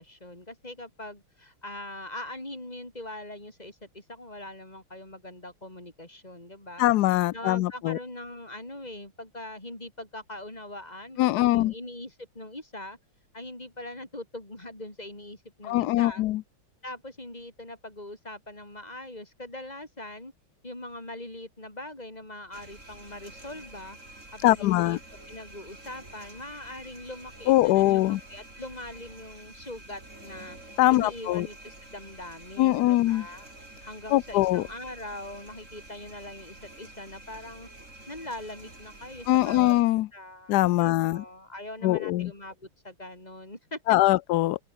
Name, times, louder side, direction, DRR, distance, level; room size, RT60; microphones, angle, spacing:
voice 1, 0.0-6.9 7.3-13.0 13.3-16.2 16.8-20.3 20.6-24.0 24.3-25.0 25.3-33.5 33.9-37.7 38.1-39.8 40.1-43.8, left 1 dB, 20° left, 5.3 m, -42 dB
voice 2, 6.8-8.0 11.2-11.7 15.6-16.4 24.4-25.0 27.5-28.2 30.8-31.5 32.6-33.3 34.1-34.6 39.3-40.1 40.5-41.2 41.8-42.3 43.9-44.6, left 16 dB, 90° left, 0.8 m, -22 dB
sound 1, 22.5-39.8, right 2 dB, 35° right, 6.8 m, -48 dB
open air
omnidirectional pair, 2.3 m